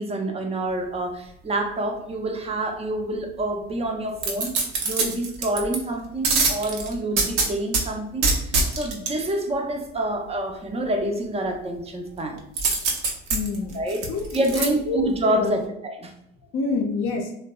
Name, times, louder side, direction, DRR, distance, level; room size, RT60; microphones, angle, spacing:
voice 1, 0.0-4.5 4.8-12.4 13.7-16.1, right 1 dB, 20° right, 4 dB, 0.4 m, -27 dB
sound 1, 4.2-5.8 6.2-7.8 8.2-9.1 12.6-14.7 15.1-15.2, right 3 dB, 80° right, 0.6 m, -23 dB
voice 2, 13.3-13.8 14.1-15.6 16.5-17.3, left 4 dB, 40° left, 0 dB, 0.4 m, -27 dB
2.6 x 2.1 x 2.2 m, 0.77 s
hypercardioid pair, 65°, 35 cm